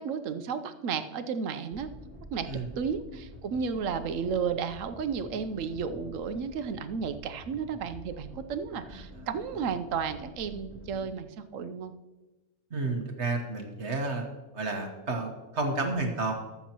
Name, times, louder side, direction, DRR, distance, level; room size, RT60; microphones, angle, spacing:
voice 1, 0.0-1.9 2.3-2.5 2.8-11.9, right 6 dB, 90° right, 10 dB, 1.1 m, -33 dB
sound 1, 1.7-11.1, left 1 dB, 10° right, 2.4 m, -48 dB
voice 2, 12.7-14.2 14.5-16.3, right 3 dB, 60° right, 3 dB, 1.5 m, -31 dB
21.0 x 7.2 x 2.9 m, 1.1 s
omnidirectional pair, 1.3 m